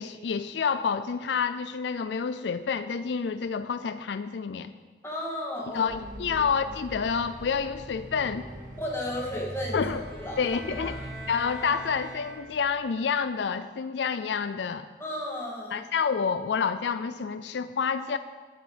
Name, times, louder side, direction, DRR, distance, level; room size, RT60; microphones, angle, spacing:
voice 1, 0.0-4.7 5.7-8.5 9.7-10.0 10.4-11.0 11.3-14.9 15.7-18.2, left 6 dB, 75° left, 12 dB, 0.4 m, -28 dB
voice 2, 5.0-5.8 6.3-6.4 8.8-9.8 10.2-10.4 10.8-11.0 15.0-15.8, left 1 dB, 15° left, -3 dB, 2.1 m, -33 dB
sound 1, 5.9-13.1, right 1 dB, 45° right, 1.8 m, -42 dB
sound 2, 9.7-12.9, right 1 dB, 60° right, 4.0 m, -44 dB
8.4 x 8.4 x 8.0 m, 1.5 s
head